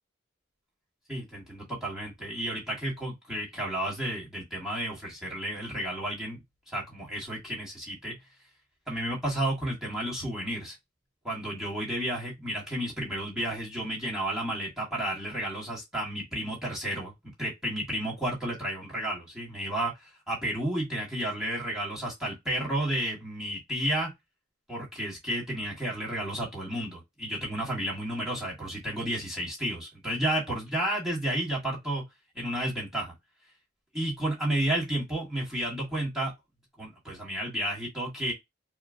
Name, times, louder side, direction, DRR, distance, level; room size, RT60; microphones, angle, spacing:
voice 1, 1.1-6.4 6.7-8.2 8.9-10.7 11.2-17.1 17.4-24.1 24.7-32.0 32.3-33.1 33.9-36.3 36.8-38.3, right 1 dB, 5° right, 1.6 m, -32 dB
4.3 x 2.0 x 2.6 m
head